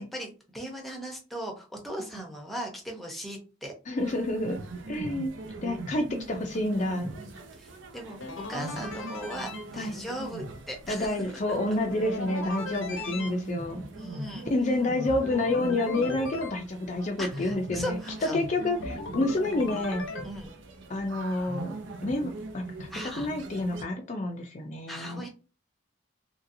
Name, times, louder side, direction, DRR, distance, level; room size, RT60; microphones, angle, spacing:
voice 1, 0.0-3.7 7.2-8.2 8.5-11.6 12.9-13.0 14.0-14.5 17.2-18.4 20.2-20.6 22.9-23.3 24.9-25.3, equal, ahead, 1 dB, 0.7 m, -38 dB
voice 2, 3.9-4.6 4.9-5.3 5.6-7.1 9.8-10.0 10.9-13.8 14.5-18.0 18.3-20.1 20.9-21.7 22.0-22.9 23.1-25.2, left 2 dB, 40° left, 4 dB, 0.4 m, -29 dB
sound 1, 4.0-23.8, right 2 dB, 75° right, 0.6 m, -41 dB
sound 2, 8.2-9.6 11.9-13.3 15.1-16.5 18.8-20.2, left 3 dB, 85° left, 0.7 m, -37 dB
2.9 x 2.7 x 2.6 m, 0.33 s
head